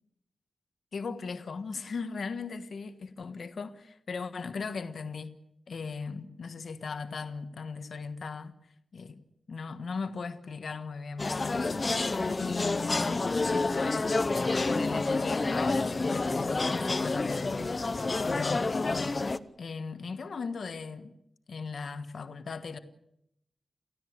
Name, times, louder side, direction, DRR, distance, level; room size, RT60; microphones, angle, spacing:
voice 1, 0.9-5.3 5.7-8.5 8.9-9.2 9.5-11.8 12.4-14.1 14.7-17.7 18.2-19.1 19.6-21.1 21.5-22.8, left 4 dB, 70° left, 1.4 m, -37 dB
sound 1, 11.2-19.4, left 3 dB, 30° left, 0.8 m, -29 dB
29.0 x 15.5 x 8.0 m
wide cardioid pair, 170°, 0 cm